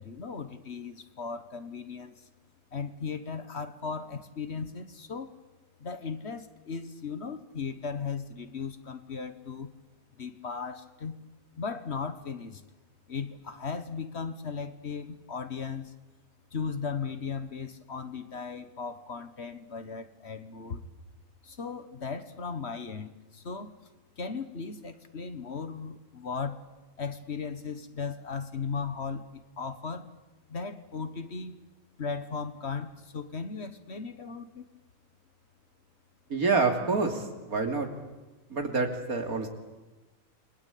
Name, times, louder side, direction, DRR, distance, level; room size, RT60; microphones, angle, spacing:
voice 1, 0.0-2.3 2.7-5.3 5.8-9.7 10.2-11.2 11.6-12.6 13.1-16.0 16.5-20.8 21.4-23.7 24.2-26.6 27.0-30.1 30.5-31.6 32.0-34.7, left 5 dB, 50° left, 11 dB, 1.6 m, -37 dB
voice 2, 36.3-37.9 38.5-39.5, right 4 dB, 80° right, 5 dB, 3.5 m, -27 dB
29.0 x 22.0 x 8.6 m, 1.1 s
omnidirectional pair, 1.5 m